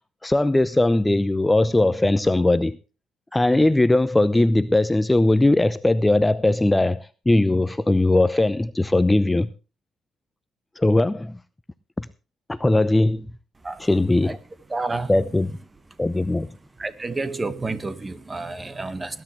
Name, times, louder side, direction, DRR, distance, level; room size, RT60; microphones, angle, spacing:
voice 1, 0.2-2.8 3.3-9.5 10.8-11.4 12.0-12.1 12.5-13.3 13.8-14.4 15.1-15.5 16.0-16.6, left 2 dB, 15° left, 0.6 m, -19 dB
voice 2, 14.7-15.1 15.9-16.0 16.8-19.2, right 3 dB, 25° right, 1.6 m, -30 dB
20.0 x 11.0 x 3.2 m
hypercardioid pair, 50°, 0 cm